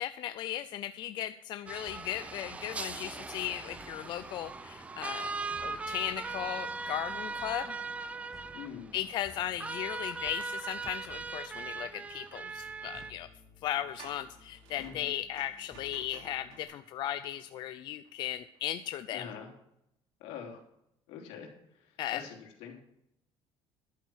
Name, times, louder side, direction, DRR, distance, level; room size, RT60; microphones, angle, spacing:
voice 1, 0.0-7.7 8.9-13.3 13.6-19.2 22.0-22.2, left 12 dB, 45° left, 11 dB, 0.4 m, -37 dB
sound 1, 1.7-13.1, right 4 dB, 10° right, 0.5 m, -39 dB
sound 2, 1.9-16.6, left 2 dB, 5° left, 2.2 m, -58 dB
voice 2, 8.5-8.9 14.7-15.1 19.1-19.5 20.2-20.6 21.1-21.5 21.7-22.8, left 8 dB, 80° left, 1 dB, 3.2 m, -44 dB
sound 3, 11.6-11.7 12.2-12.3 13.6-18.1 18.5-18.6, right 5 dB, 90° right, 2.9 m, -56 dB
11.5 x 8.7 x 6.3 m, 0.77 s
cardioid pair, 170°, 11 cm